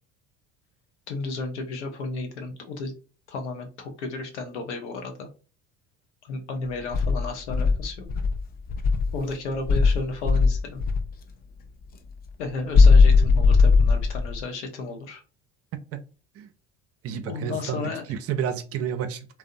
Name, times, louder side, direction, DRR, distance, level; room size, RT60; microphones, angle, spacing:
voice 1, 1.1-2.9 3.3-5.3 6.2-8.1 9.1-10.8 12.4-15.2 17.3-18.2, left 3 dB, 85° left, 5 dB, 0.7 m, -33 dB
Insect, 6.9-9.2 9.7-11.1 12.7-14.4, left 4 dB, 30° left, 0.4 m, -18 dB
voice 2, 17.0-19.3, right 8 dB, 45° right, 10 dB, 0.4 m, -30 dB
2.5 x 2.0 x 2.5 m, 0.35 s
hypercardioid pair, 70°, 34 cm